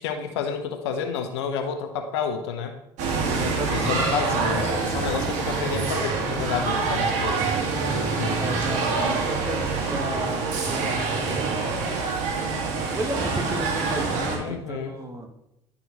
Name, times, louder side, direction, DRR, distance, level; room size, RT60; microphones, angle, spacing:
voice 1, 0.0-2.8 3.7-7.5 8.2-8.4 14.4-15.0, left 6 dB, 75° left, 7 dB, 0.8 m, -30 dB
sound 1, 3.0-14.4, right 4 dB, 55° right, 1.7 m, -26 dB
voice 2, 3.2-4.1 8.4-11.7 12.9-15.3, right 2 dB, 20° right, 4 dB, 1.4 m, -33 dB
11.5 x 4.0 x 3.0 m, 0.83 s
figure-of-eight pair, 60°, 14 cm